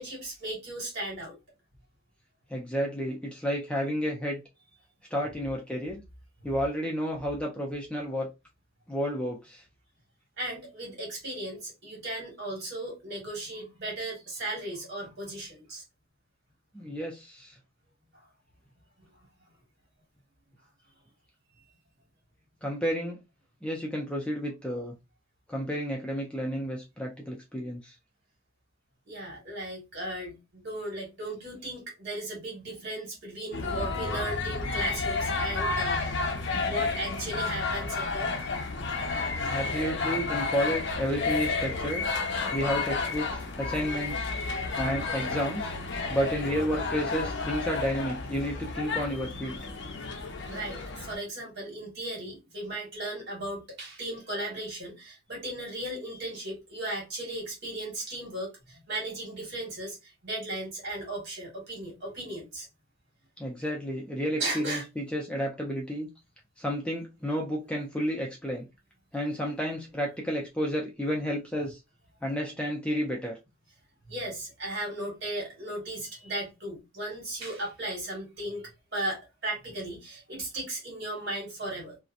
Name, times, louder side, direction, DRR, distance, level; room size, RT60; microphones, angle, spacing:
voice 1, 0.0-1.3 10.4-15.8 29.1-36.3 36.6-38.5 50.4-62.7 64.4-64.8 74.1-82.0, right 1 dB, 55° right, 1.5 m, -36 dB
voice 2, 2.5-4.4 5.1-6.0 6.4-8.3 8.9-9.6 16.7-17.5 22.6-23.2 23.6-24.9 25.5-28.0 39.5-42.1 42.5-44.3 44.8-45.7 46.1-49.5 63.4-66.1 66.6-68.6 69.1-71.8 72.2-73.4, equal, 5° left, 0.5 m, -31 dB
sound 1, 33.5-51.2, left 3 dB, 60° left, 0.5 m, -31 dB
2.7 x 2.1 x 2.4 m
head